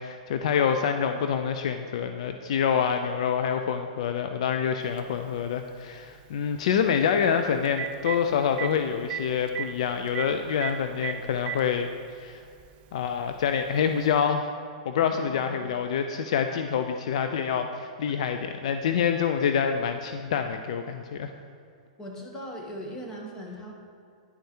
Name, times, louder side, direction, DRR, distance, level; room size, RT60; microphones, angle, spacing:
voice 1, 0.0-11.9 12.2-12.4 12.9-14.5 14.8-21.3, left 7 dB, 65° left, 7 dB, 0.4 m, -26 dB
Telephone, 5.0-5.1 7.2-7.3 7.6-8.2 8.6-8.7 9.1-9.2 9.5-9.7 10.1-10.3 10.6-10.7 11.0-11.6 12.6-12.7 14.1-14.2, right 12 dB, 35° right, 0.3 m, -32 dB
voice 2, 15.3-15.6 22.0-23.7, equal, 20° left, 0 dB, 1.6 m, -39 dB
10.0 x 4.7 x 4.5 m, 2.5 s
hypercardioid pair, 115°, 4 cm